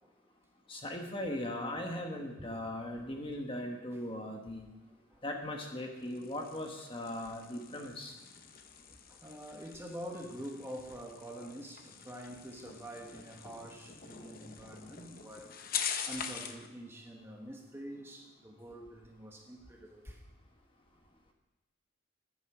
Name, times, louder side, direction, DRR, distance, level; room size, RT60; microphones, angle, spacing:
voice 1, 0.7-4.6 5.2-8.1, left 1 dB, 25° left, 1.2 m, -39 dB
voice 2, 4.9-5.2 8.9-15.6 16.1-20.2, right 1 dB, 10° right, 1.2 m, -46 dB
sound 1, 6.0-16.7, left 7 dB, 45° left, 0.8 m, -44 dB
9.9 x 9.3 x 6.0 m
head